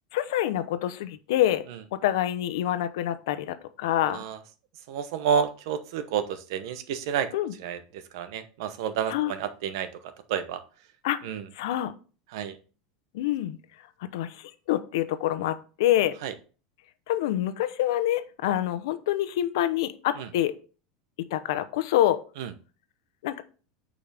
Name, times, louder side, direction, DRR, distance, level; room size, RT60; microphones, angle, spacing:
voice 1, 0.1-1.6 1.9-4.2 7.3-7.5 9.1-9.3 11.0-11.2 11.5-11.9 13.1-13.6 14.1-16.2 17.1-20.5 21.3-22.2 23.2-23.4, left 13 dB, 75° left, 12 dB, 0.9 m, -26 dB
voice 2, 4.0-4.4 4.9-7.3 7.6-10.6 11.2-11.5 12.3-12.6 16.2-16.3 20.2-20.3 22.4-22.5, right 8 dB, 65° right, 11 dB, 0.9 m, -30 dB
8.8 x 5.1 x 3.5 m, 0.37 s
supercardioid pair, 170°, 2 cm